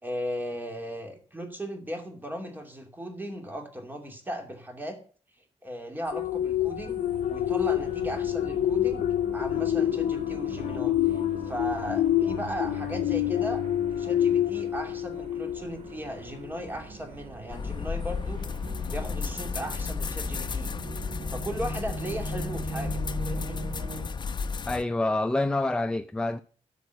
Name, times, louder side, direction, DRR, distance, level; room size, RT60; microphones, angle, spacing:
voice 1, 0.0-5.0 5.6-9.1 9.3-13.6 13.9-18.5 18.9-20.7 21.3-23.6, equal, 15° right, 2.6 m, -37 dB
sound 1, 6.1-16.0 16.4-16.7, left 12 dB, 90° left, 0.5 m, -27 dB
sound 2, 6.1-24.0, right 3 dB, 65° right, 2.2 m, -41 dB
sound 3, 17.5-24.8, left 5 dB, 40° left, 0.8 m, -33 dB
voice 2, 24.7-26.4, left 2 dB, 5° left, 0.4 m, -27 dB
13.5 x 5.2 x 8.2 m
wide cardioid pair, 130°, 12 cm